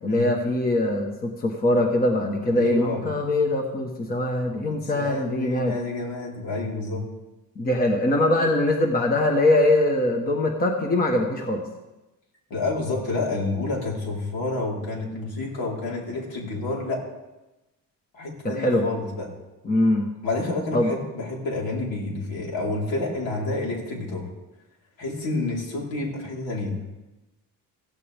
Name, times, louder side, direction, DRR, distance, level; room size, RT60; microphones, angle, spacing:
voice 1, 0.0-5.7 7.6-11.6 18.5-18.8 19.6-20.1 20.7-20.9, left 1 dB, 25° left, 2 dB, 1.3 m, -22 dB
voice 2, 2.5-3.0 4.7-7.0 12.5-17.0 18.1-19.3 20.2-24.3 25.0-26.7, left 2 dB, 75° left, -2 dB, 4.3 m, -29 dB
16.0 x 16.0 x 3.6 m, 1.0 s
cardioid pair, 170°, 36 cm